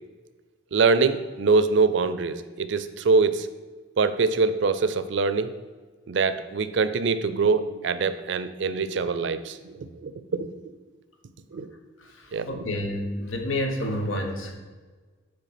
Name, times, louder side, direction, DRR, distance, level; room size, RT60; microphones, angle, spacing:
voice 1, 0.7-3.5 4.0-5.5 6.1-10.6 11.5-11.7 12.3-12.6, right 4 dB, 65° right, 12 dB, 0.4 m, -24 dB
voice 2, 12.0-14.6, left 1 dB, 80° left, 4 dB, 1.1 m, -29 dB
8.2 x 3.2 x 5.8 m, 1.4 s
head